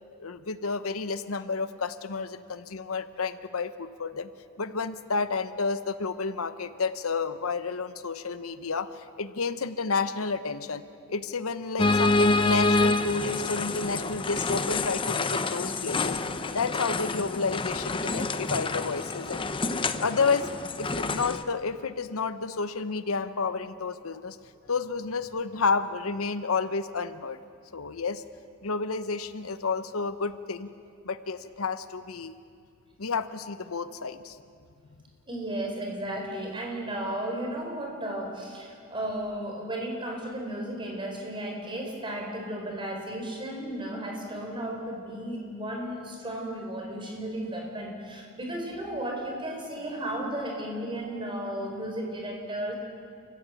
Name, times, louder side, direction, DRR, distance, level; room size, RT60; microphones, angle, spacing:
voice 1, 0.2-4.3 4.6-8.9 9.2-10.8 11.1-16.2 16.5-19.5 20.0-24.4 24.7-27.4 27.7-28.2 28.6-30.7 31.0-32.3 33.0-34.4, left 4 dB, 85° left, 12 dB, 0.9 m, -30 dB
sound 1, 11.8-21.4, left 3 dB, 25° left, 0.7 m, -27 dB
voice 2, 35.3-52.7, right 1 dB, 25° right, 1 dB, 4.2 m, -34 dB
29.0 x 15.5 x 8.3 m, 2.3 s
head